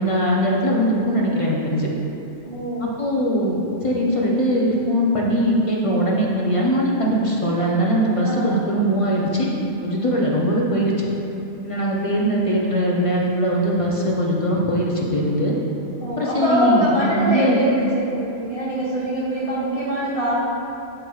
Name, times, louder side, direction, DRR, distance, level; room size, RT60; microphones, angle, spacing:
voice 1, 0.0-1.9 2.8-11.1 11.6-15.5 16.2-17.6, equal, 35° left, -4 dB, 0.6 m, -21 dB
voice 2, 2.4-2.9 8.2-8.6 16.0-20.3, right 1 dB, 30° right, -9 dB, 1.1 m, -23 dB
11.5 x 4.5 x 2.3 m, 2.9 s
omnidirectional pair, 1.3 m